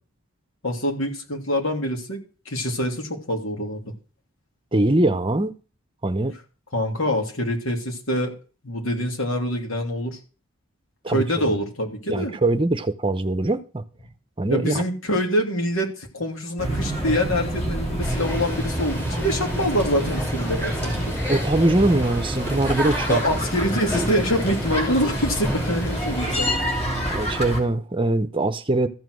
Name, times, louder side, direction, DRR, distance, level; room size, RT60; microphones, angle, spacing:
voice 1, 0.6-2.2 2.5-3.9 6.7-8.3 8.6-10.2 11.1-12.3 14.5-21.1 23.1-26.6, equal, 70° left, 3.0 m, -25 dB
voice 2, 4.7-5.5 6.0-6.3 11.0-11.2 12.1-13.8 14.4-14.8 21.3-23.2 27.1-28.9, right 2 dB, 25° right, 0.8 m, -22 dB
sound 1, 16.6-27.6, right 1 dB, 30° left, 3.3 m, -28 dB
sound 2, 18.0-26.4, equal, 10° left, 4.7 m, -30 dB
14.0 x 7.5 x 6.3 m
head